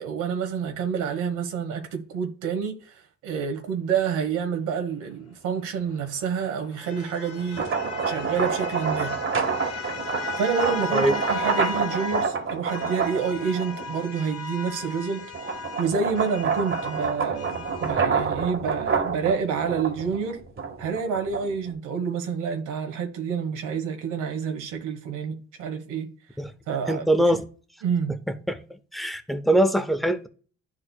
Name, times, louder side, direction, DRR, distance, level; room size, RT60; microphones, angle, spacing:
voice 1, 0.0-7.7 8.1-9.1 10.4-15.3 15.8-20.4 20.8-26.1 26.7-27.4 27.8-28.2, right 6 dB, 90° right, 1.3 m, -28 dB
sound 1, 5.7-12.3 12.7-18.0, left 3 dB, 55° left, 1.8 m, -36 dB
sound 2, 7.4-14.0 14.5-21.7, right 5 dB, 45° right, 1.6 m, -28 dB
voice 2, 26.9-27.4 28.5-28.6 28.9-30.3, right 1 dB, ahead, 0.7 m, -22 dB
11.0 x 4.3 x 2.3 m
cardioid pair, 90°, 30 cm